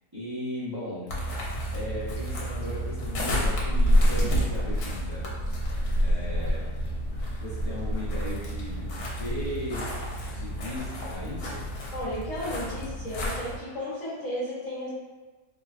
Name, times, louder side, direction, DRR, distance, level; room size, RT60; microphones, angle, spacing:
voice 1, 0.1-1.1 1.7-5.3 6.0-6.7 7.4-9.9 10.2-11.7, left 1 dB, 25° right, -11 dB, 0.6 m, -37 dB
sound 1, 1.1-13.6, equal, 80° left, 1.2 m, -28 dB
voice 2, 11.9-14.9, equal, 60° left, -7 dB, 1.2 m, -34 dB
3.8 x 2.3 x 2.4 m, 1.3 s
omnidirectional pair, 1.6 m